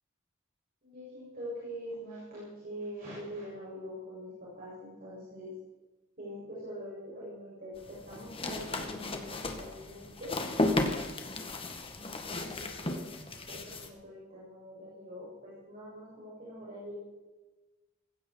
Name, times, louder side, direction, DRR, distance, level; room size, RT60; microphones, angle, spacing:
voice 1, 0.8-5.6 6.2-10.4 12.0-17.0, equal, 40° right, -7 dB, 7.4 m, -44 dB
sound 1, 7.8-13.9, left 2 dB, 25° left, 1.9 m, -34 dB
19.0 x 16.0 x 4.7 m, 1.1 s
head